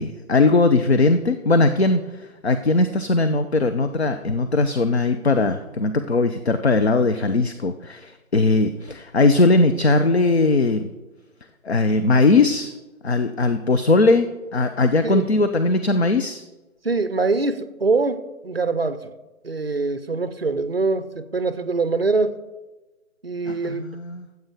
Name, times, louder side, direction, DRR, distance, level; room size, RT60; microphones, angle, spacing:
voice 1, 0.0-10.9 11.6-12.7 13.0-16.4 23.5-24.3, left 3 dB, 50° left, 8 dB, 0.5 m, -19 dB
voice 2, 16.8-19.1 19.4-22.4 23.2-23.9, right 3 dB, 45° right, 13 dB, 0.4 m, -23 dB
13.5 x 7.8 x 3.5 m, 1.1 s
figure-of-eight pair, 150°, 43 cm